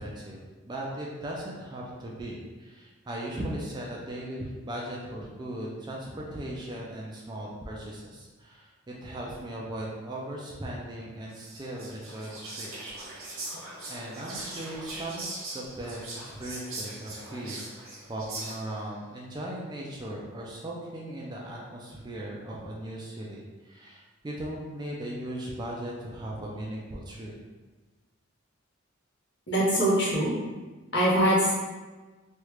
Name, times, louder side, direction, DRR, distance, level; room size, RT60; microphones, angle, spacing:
voice 1, 0.0-8.7 9.0-12.7 13.1-13.2 13.9-17.6 18.1-27.3, right 1 dB, 20° right, -3 dB, 0.3 m, -38 dB
Whispering, 11.3-18.9, right 2 dB, 80° right, 1.1 m, -40 dB
voice 2, 29.5-30.3 30.9-31.5, equal, 55° left, -6 dB, 1.0 m, -23 dB
3.1 x 2.4 x 3.0 m, 1.3 s
head